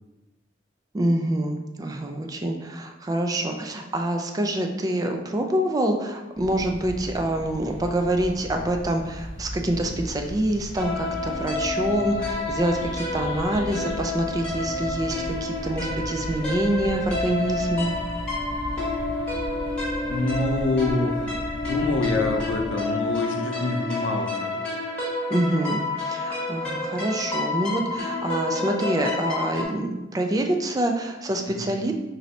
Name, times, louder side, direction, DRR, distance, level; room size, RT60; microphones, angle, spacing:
voice 1, 0.9-17.9 25.3-31.9, right 1 dB, 20° right, 4 dB, 0.3 m, -26 dB
sound 1, 6.3-22.7, equal, 65° left, 1.0 m, -37 dB
sound 2, 10.7-29.6, left 2 dB, 5° left, 1.2 m, -29 dB
voice 2, 20.1-21.3 21.5-24.5 31.5-31.7, left 2 dB, 85° left, 3 dB, 0.5 m, -26 dB
4.0 x 2.7 x 3.1 m, 1.1 s
head